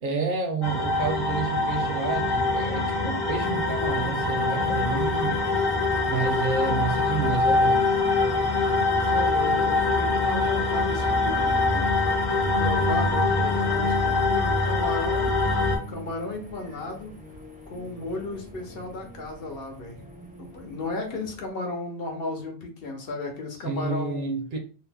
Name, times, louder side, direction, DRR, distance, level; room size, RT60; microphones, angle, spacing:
voice 1, 0.0-5.4 6.0-7.8 23.6-24.6, right 4 dB, 60° right, 0.6 m, -29 dB
sound 1, 0.6-15.8, left 3 dB, 25° left, 0.6 m, -24 dB
sound 2, 3.4-21.5, right 2 dB, 10° right, 0.4 m, -42 dB
voice 2, 8.8-11.9 12.3-15.4 15.9-17.2 17.7-20.0 20.4-24.3, left 2 dB, 65° left, 1.0 m, -35 dB
2.7 x 2.0 x 3.3 m
omnidirectional pair, 1.1 m